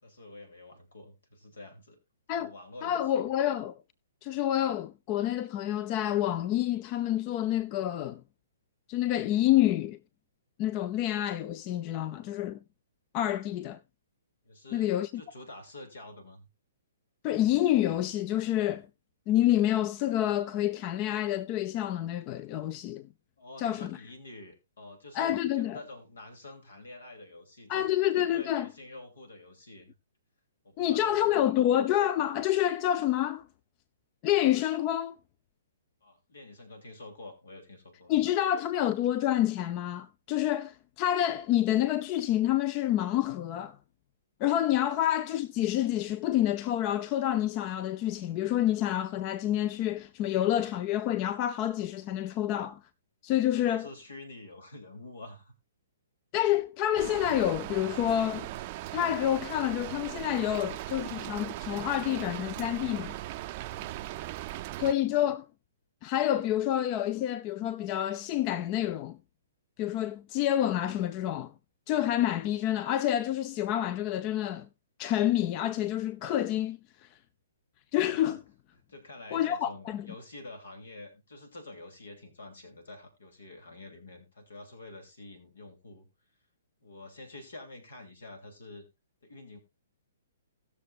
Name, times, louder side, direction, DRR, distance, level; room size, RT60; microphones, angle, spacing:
voice 1, 0.0-2.0 2.3-3.2 14.4-16.5 23.4-27.9 28.1-29.9 30.6-31.5 36.0-38.1 44.8-45.0 53.4-55.5 63.7-64.1 78.1-78.4 78.9-86.1 86.8-88.9 89.2-89.6, left 2 dB, 75° left, 3.0 m, -48 dB
voice 2, 2.8-3.8 4.2-8.2 8.9-10.0 10.6-12.6 13.1-13.8 14.7-15.2 17.2-18.9 19.3-23.1 23.6-24.0 25.1-25.8 27.7-28.7 30.8-33.5 34.2-35.1 38.1-43.8 44.4-52.8 53.2-53.9 56.3-58.5 58.9-63.2 64.8-65.4 66.0-69.2 69.8-71.5 71.9-74.7 75.0-77.1 77.9-78.4 79.3-80.0, left 12 dB, 35° left, 0.6 m, -28 dB
Rain, 56.9-64.9, right 15 dB, 40° right, 0.5 m, -39 dB
18.0 x 6.7 x 2.5 m
hypercardioid pair, 130°, 0 cm